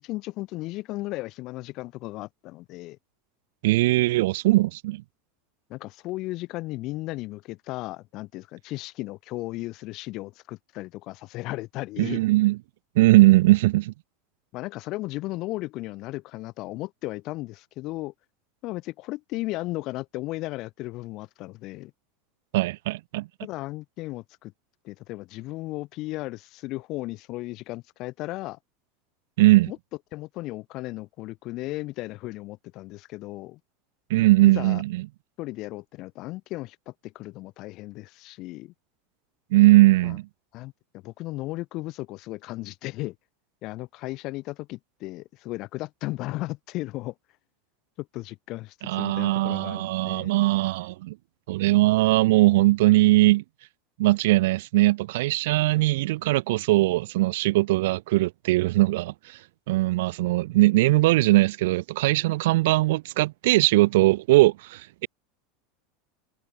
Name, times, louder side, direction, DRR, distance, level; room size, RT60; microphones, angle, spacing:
voice 1, 0.0-3.0 5.7-12.2 14.5-18.1 18.6-21.9 23.4-24.5 24.8-28.6 29.7-29.8 30.1-33.6 34.4-34.8 35.4-38.7 40.0-40.2 40.5-43.1 43.6-47.1 48.0-50.3, left 19 dB, 50° left, 5.7 m, -35 dB
voice 2, 3.6-5.0 12.0-12.6 13.0-13.9 22.5-23.3 29.4-29.7 34.1-35.1 39.5-40.3 48.8-51.2 51.5-53.4 54.0-59.1 59.7-65.1, right 19 dB, 75° right, 1.7 m, -20 dB
supercardioid pair, 130°, 0 cm